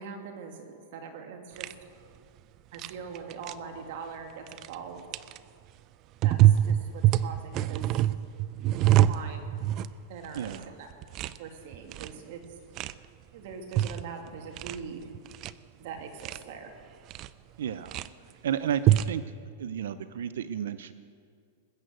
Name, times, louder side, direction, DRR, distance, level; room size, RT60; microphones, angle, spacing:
voice 1, 0.0-1.7 2.7-5.1 6.2-8.0 8.8-9.5 10.1-10.9 11.4-12.4 12.7-12.9 13.3-15.1 15.8-16.8, right 6 dB, 55° right, 4 dB, 2.4 m, -42 dB
sound 1, 1.6-1.7 2.7-2.9 3.1-3.5 4.5-4.7 5.1-5.4 6.2-9.9 10.2-10.6 10.9-11.4 11.7-12.2 12.8-12.9 13.5-14.0 14.3-14.8 15.1-15.5 16.0-16.4 17.1-17.3 17.7-18.1 18.7-19.1, right 13 dB, 35° right, 0.4 m, -25 dB
voice 2, 10.3-10.7 17.6-18.0 18.4-19.2 19.6-20.9, right 9 dB, 80° right, 13 dB, 0.6 m, -32 dB
20.0 x 8.2 x 7.8 m, 2.2 s
supercardioid pair, 145°, 0 cm